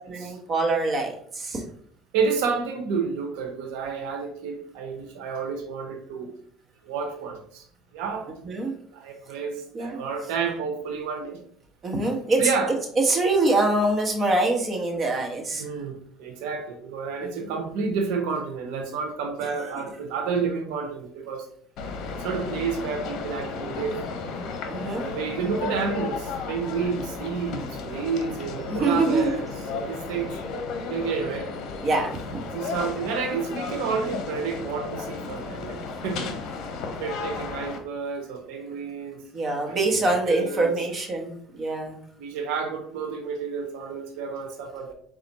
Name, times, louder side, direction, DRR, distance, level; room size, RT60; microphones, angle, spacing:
voice 1, 0.1-1.6 8.5-8.7 9.7-10.0 11.8-12.4 13.0-15.6 17.2-17.5 24.7-25.0 28.7-29.3 31.8-32.4 39.3-42.0, right 2 dB, 35° right, 1 dB, 1.1 m, -24 dB
voice 2, 2.1-6.3 6.8-7.7 7.9-8.3 8.9-11.4 12.4-12.7 15.6-21.5 22.1-24.0 24.9-30.3 30.9-31.5 32.5-36.3 37.0-39.2 39.6-40.7 42.2-44.9, right 5 dB, 80° right, 3 dB, 0.7 m, -30 dB
sound 1, 21.8-37.8, left 4 dB, 60° left, 0.7 m, -34 dB
4.3 x 2.4 x 4.0 m, 0.62 s
supercardioid pair, 105°, 0 cm